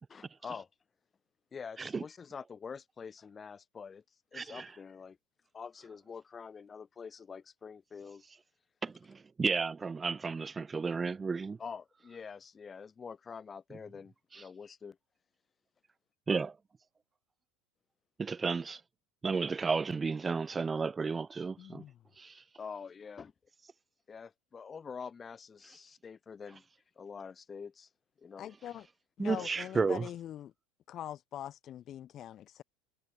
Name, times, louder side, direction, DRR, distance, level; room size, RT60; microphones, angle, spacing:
voice 1, 0.1-0.7 1.5-4.0 4.3-5.2 5.5-8.2 11.6-15.0 22.6-23.3 24.1-26.6 27.0-27.9 28.2-28.5, left 6 dB, 25° left, 2.0 m, -46 dB
voice 2, 4.3-4.7 8.8-11.6 14.3-14.4 16.3-16.5 18.2-18.8 19.2-21.8 22.2-22.4 29.2-30.1, right 4 dB, 20° right, 1.0 m, -33 dB
voice 3, 21.6-22.0 28.4-28.9 29.2-30.5 30.9-32.6, left 11 dB, 40° left, 1.2 m, -43 dB
supercardioid pair, 105°, 0 cm